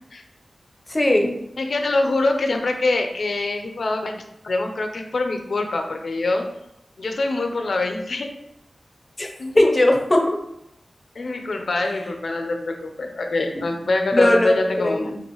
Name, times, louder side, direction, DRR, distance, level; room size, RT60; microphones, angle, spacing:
voice 1, 0.9-1.3 9.2-9.3 9.5-10.4 14.1-15.2, left 1 dB, 30° left, 2 dB, 0.7 m, -19 dB
voice 2, 1.6-4.1 4.4-6.5 7.0-8.3 9.4-9.7 11.2-15.1, left 2 dB, 70° left, 5 dB, 0.5 m, -24 dB
5.4 x 2.5 x 3.0 m, 0.80 s
wide cardioid pair, 80°, 0 cm